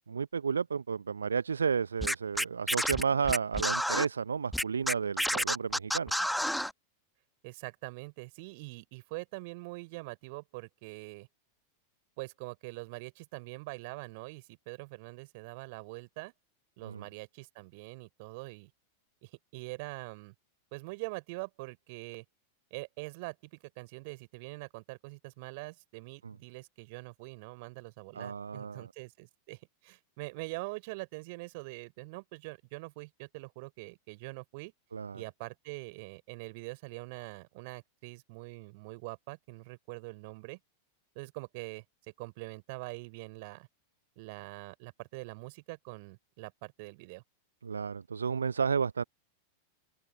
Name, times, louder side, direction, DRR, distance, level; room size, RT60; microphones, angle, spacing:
voice 1, 0.0-6.1 16.8-17.0 26.2-26.3 28.1-28.9 34.9-35.2 47.6-49.0, right 6 dB, 70° right, 0.8 m, -32 dB
Scratching (performance technique), 2.0-4.1 4.5-6.7, equal, ahead, 1.0 m, -30 dB
voice 2, 7.4-11.3 12.2-16.3 16.8-18.7 19.2-20.3 20.7-22.2 22.7-34.7 35.1-40.6 41.1-41.8 42.2-43.7 44.2-47.2, right 27 dB, 50° right, 3.9 m, -44 dB
open air
figure-of-eight pair, 90°, 0 cm